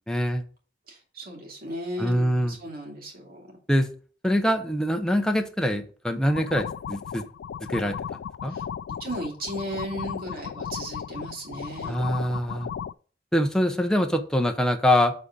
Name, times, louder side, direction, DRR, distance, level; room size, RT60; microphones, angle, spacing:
voice 1, 0.1-0.4 2.0-2.6 3.7-3.9 4.2-7.2 7.7-8.6 11.8-12.7 13.3-15.1, equal, 5° left, 5 dB, 0.7 m, -24 dB
voice 2, 0.9-3.5 8.5-8.6 9.0-12.0, right 1 dB, 55° right, 0 dB, 2.5 m, -35 dB
sound 1, 6.3-12.9, left 8 dB, 90° left, 0.3 m, -35 dB
7.6 x 4.1 x 5.0 m, 0.41 s
head